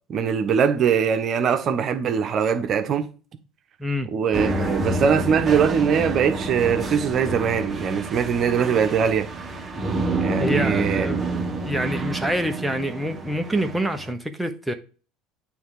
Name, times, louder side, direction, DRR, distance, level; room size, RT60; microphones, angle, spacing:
voice 1, 0.1-3.1 4.1-9.3 10.2-11.1, right 7 dB, 45° right, 1.1 m, -22 dB
sound 1, 4.3-14.1, right 2 dB, 20° right, 1.6 m, -28 dB
voice 2, 10.4-11.4 11.6-14.7, equal, 5° right, 1.0 m, -26 dB
8.6 x 3.5 x 4.9 m
hypercardioid pair, 80°, 0 cm